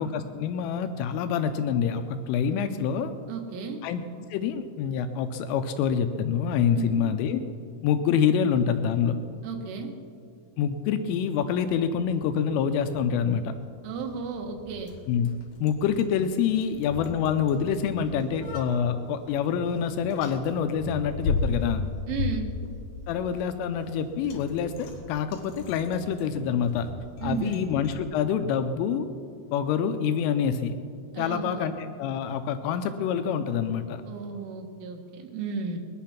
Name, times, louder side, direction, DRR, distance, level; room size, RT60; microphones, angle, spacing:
voice 1, 0.0-3.1 3.8-4.0 4.3-7.4 7.8-9.1 10.6-13.5 15.1-15.3 15.6-21.8 23.1-26.9 27.2-29.1 29.5-30.7 31.2-34.0, left 7 dB, 85° left, 8 dB, 3.2 m, -26 dB
voice 2, 3.3-3.8 6.7-7.1 9.4-9.9 13.8-14.9 22.1-22.5 27.2-27.6 31.1-31.6 34.1-35.8, right 5 dB, 80° right, 3 dB, 3.7 m, -33 dB
Bicycle, 11.9-28.0, left 3 dB, 65° left, 3.4 m, -37 dB
21.0 x 10.5 x 5.8 m, 2.3 s
omnidirectional pair, 5.7 m